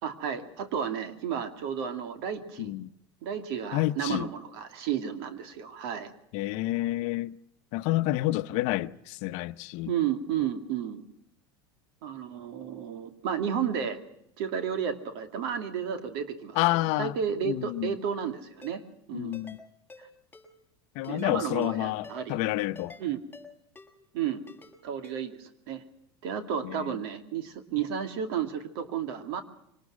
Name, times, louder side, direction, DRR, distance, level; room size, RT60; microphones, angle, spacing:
voice 1, 0.0-2.7 3.2-6.1 9.9-11.0 12.0-14.0 14.4-18.8 19.1-19.4 21.1-22.4 23.0-23.2 24.1-24.4 24.8-25.8 26.2-29.4, right 8 dB, 70° right, 2.5 m, -32 dB
voice 2, 2.6-2.9 3.7-4.3 6.3-7.3 7.7-9.9 16.5-17.1 17.4-18.0 19.1-19.6 20.9-23.0 26.6-27.0, left 17 dB, 60° left, 0.8 m, -29 dB
Ringtone, 18.6-18.7 19.3-19.6 19.9-20.0 20.3-20.5 21.0-21.3 21.6-21.7 22.0-22.2 22.8-23.0 23.3-23.5 23.8-23.9 24.5-24.7 25.0-25.2, left 3 dB, 15° left, 6.1 m, -49 dB
24.5 x 19.5 x 6.2 m
hypercardioid pair, 100°, 13 cm